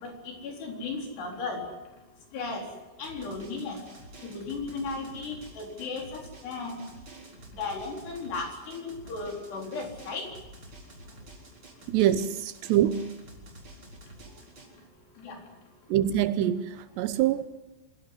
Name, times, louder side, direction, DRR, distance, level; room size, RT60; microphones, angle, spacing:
voice 1, 0.0-1.6 2.3-2.6 3.0-3.8 4.2-6.8 7.6-10.3 15.2-15.4, left 3 dB, 70° left, 6.2 m, -35 dB
Drum, 3.0-14.7, right 1 dB, 30° right, 4.7 m, -49 dB
voice 2, 11.9-13.1 15.9-17.4, right 11 dB, 80° right, 3.0 m, -25 dB
26.5 x 16.5 x 9.6 m
omnidirectional pair, 5.0 m